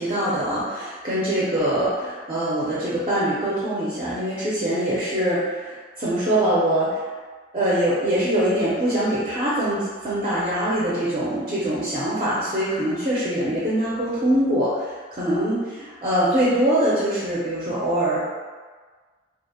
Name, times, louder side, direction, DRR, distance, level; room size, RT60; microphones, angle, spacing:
voice 1, 0.0-7.1 7.5-18.2, right 1 dB, 30° right, -8 dB, 0.4 m, -23 dB
2.4 x 2.0 x 2.7 m, 1.5 s
head